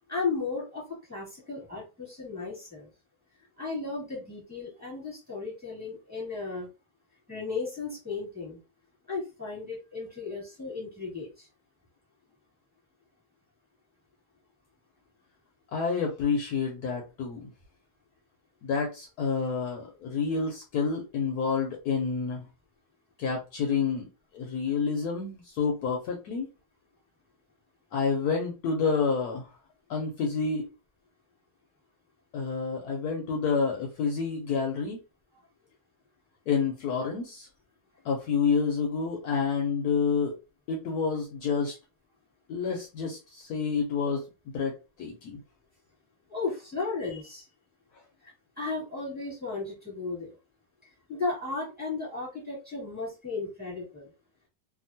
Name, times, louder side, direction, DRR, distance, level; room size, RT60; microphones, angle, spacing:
voice 1, 0.1-2.9 3.6-6.7 7.3-8.6 9.1-11.5 46.3-47.5 48.6-50.3 51.1-54.1, left 4 dB, 5° right, -6 dB, 1.5 m, -35 dB
voice 2, 15.7-17.5 18.6-22.5 23.2-26.5 27.9-29.5 29.9-30.7 32.3-35.0 36.5-37.5 38.0-40.3 40.7-41.8 42.5-44.2 44.5-45.4, left 5 dB, 70° left, 1 dB, 1.0 m, -29 dB
2.8 x 2.4 x 2.6 m, 0.29 s
omnidirectional pair, 1.9 m